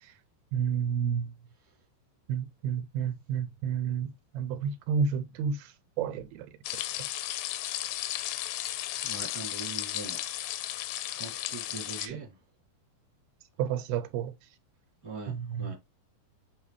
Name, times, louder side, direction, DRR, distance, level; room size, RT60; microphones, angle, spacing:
voice 1, 0.5-1.3 2.3-4.1 4.3-5.7 6.0-6.5 12.0-12.2 13.6-14.3 15.3-15.7, right 7 dB, 80° right, 2.5 m, -30 dB
sound 1, 6.6-12.1, left 14 dB, 90° left, 2.6 m, -34 dB
voice 2, 9.0-10.2 10.7-10.9 11.1-12.4 15.0-15.7, right 3 dB, 5° left, 1.6 m, -42 dB
9.2 x 3.4 x 3.1 m
omnidirectional pair, 4.5 m